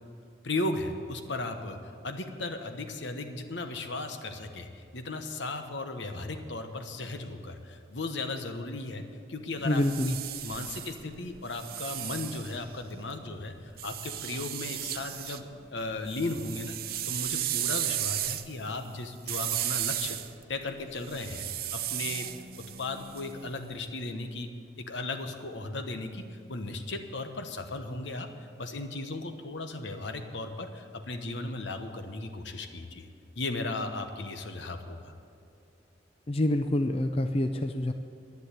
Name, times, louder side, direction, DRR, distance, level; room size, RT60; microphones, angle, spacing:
voice 1, 0.4-9.0 9.3-10.2 10.4-13.5 13.8-15.4 15.7-16.8 17.0-20.2 20.5-21.5 21.7-22.3 22.8-24.5 24.8-28.3 28.6-33.1 33.3-35.1, left 2 dB, 75° left, 6 dB, 1.1 m, -36 dB
voice 2, 9.6-10.2 36.3-37.9, left 1 dB, 30° left, 7 dB, 0.5 m, -27 dB
sound 1, 9.6-13.1 13.8-15.4 15.8-23.7, right 12 dB, 50° right, 0.6 m, -35 dB
10.5 x 10.5 x 8.4 m, 2.5 s
head